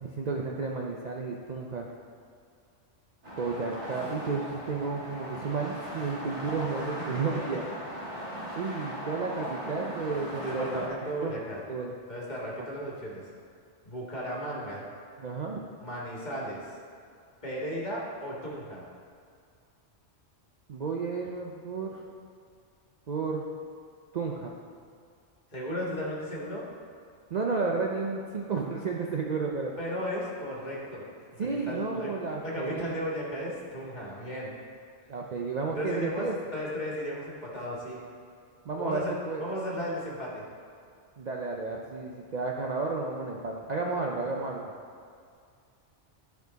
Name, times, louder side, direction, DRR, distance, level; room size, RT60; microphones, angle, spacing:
voice 1, 0.0-1.9 3.4-7.6 8.5-10.7 11.0-11.4 11.7-11.9 15.2-15.6 20.7-22.0 23.1-23.5 24.1-24.5 27.3-29.7 31.4-32.9 35.1-36.3 38.6-39.5 41.2-44.7, right 4 dB, 50° right, -1 dB, 0.6 m, -32 dB
sound 1, 3.2-10.9, equal, 35° right, 1.7 m, -38 dB
voice 2, 10.3-11.6 12.1-13.3 13.8-14.8 15.8-16.7 17.4-18.9 25.5-26.6 29.8-31.1 31.5-32.1 32.4-34.6 35.8-38.0 38.8-40.4, equal, 40° left, -5 dB, 1.7 m, -35 dB
12.0 x 4.6 x 4.0 m, 2.3 s
omnidirectional pair, 1.2 m